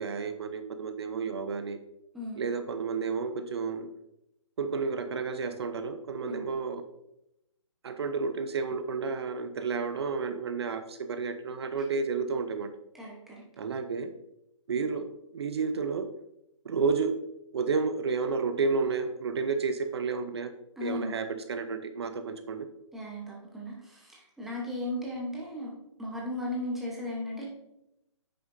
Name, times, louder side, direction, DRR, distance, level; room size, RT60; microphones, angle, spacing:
voice 1, 0.0-1.8 2.4-3.9 4.6-6.8 7.8-12.7 13.6-14.1 14.7-16.1 16.6-17.2 17.5-20.5 20.8-22.7, right 5 dB, 55° right, 9 dB, 0.7 m, -31 dB
voice 2, 12.9-13.4 20.8-21.1 22.9-25.7 26.0-27.4, left 1 dB, ahead, -4 dB, 0.9 m, -36 dB
9.0 x 6.7 x 2.6 m, 0.85 s
hypercardioid pair, 165°, 16 cm